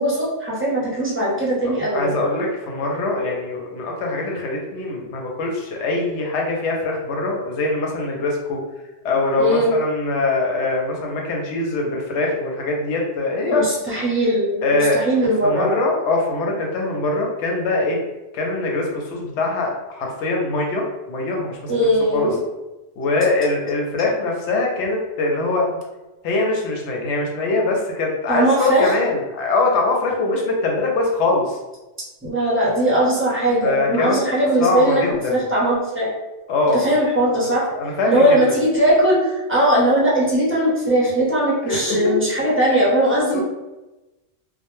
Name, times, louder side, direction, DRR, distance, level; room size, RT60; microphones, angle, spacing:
voice 1, 0.0-2.1 9.4-9.8 13.5-15.8 21.7-22.4 28.3-28.9 32.2-36.1 36.7-37.7 38.1-43.4, right 1 dB, 15° right, -7 dB, 0.6 m, -19 dB
voice 2, 1.9-8.6 9.0-13.6 14.6-15.0 15.4-18.0 18.3-21.7 22.1-22.3 23.0-25.7 26.2-31.6 33.6-34.2 34.6-35.4 36.5-37.0 37.7-38.4 41.7-42.1 43.3-43.4, left 2 dB, 90° left, 0 dB, 0.9 m, -22 dB
2.1 x 2.1 x 3.0 m, 1.1 s
omnidirectional pair, 1.2 m